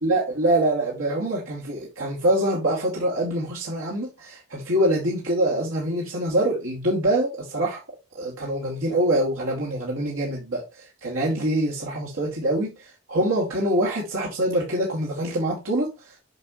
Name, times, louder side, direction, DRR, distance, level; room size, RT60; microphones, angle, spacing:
voice 1, 0.0-7.8 8.1-16.2, right 1 dB, 85° right, 2.4 m, -25 dB
8.0 x 5.5 x 3.1 m
head